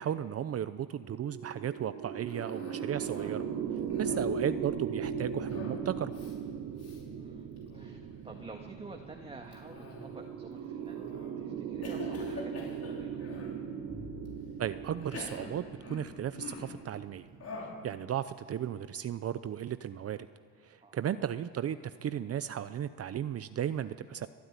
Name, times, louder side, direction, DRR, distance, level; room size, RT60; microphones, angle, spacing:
voice 1, 0.0-3.4 4.0-6.1 14.6-17.3 17.6-20.3 20.6-24.3, right 10 dB, 50° right, 12 dB, 0.7 m, -35 dB
sound 1, 1.0-18.5, right 6 dB, 85° right, 1.6 m, -39 dB
Cough, 2.3-3.5 3.8-4.4 5.5-5.8 6.1-6.3 6.8-7.0 7.6-8.0 9.5-10.3 10.9-11.3 11.8-13.6 14.2-14.3 15.0-16.8 17.4-17.8, left 3 dB, 55° left, 5.3 m, -46 dB
voice 2, 4.1-4.5 7.1-13.3 20.8-21.1, right 2 dB, 20° right, 2 dB, 1.9 m, -50 dB
Bowed string instrument, 13.9-17.0, left 2 dB, 5° left, 3.4 m, -52 dB
24.0 x 12.0 x 9.8 m, 2.3 s
cardioid pair, 90°, 30 cm